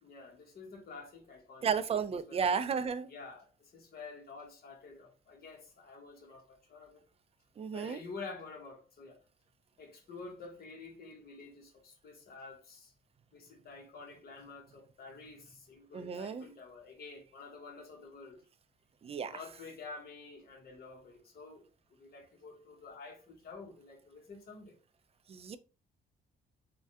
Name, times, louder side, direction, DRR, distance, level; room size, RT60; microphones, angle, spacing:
voice 1, 0.0-1.7 2.0-2.4 3.1-7.0 7.7-9.2 9.8-12.9 13.3-18.4 19.3-21.7 22.0-24.8, left 4 dB, 50° left, 1.0 m, -49 dB
voice 2, 1.6-3.1 7.6-8.0 15.9-16.5 19.0-19.4 25.3-25.6, right 6 dB, 30° right, 0.3 m, -33 dB
3.3 x 2.2 x 2.7 m
cardioid pair, 90°, 20 cm